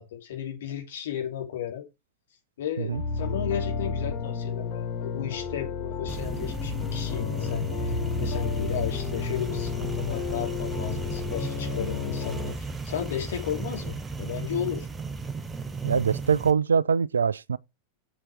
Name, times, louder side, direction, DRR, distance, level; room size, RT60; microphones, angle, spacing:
voice 1, 0.0-1.8 2.6-14.9, left 9 dB, 60° left, 2.8 m, -34 dB
sound 1, 2.9-12.5, left 5 dB, 35° left, 3.4 m, -31 dB
sound 2, 6.1-16.5, right 3 dB, 15° right, 1.0 m, -35 dB
voice 2, 15.8-17.6, right 6 dB, 70° right, 0.4 m, -23 dB
7.5 x 7.3 x 4.7 m
figure-of-eight pair, 90°, 0 cm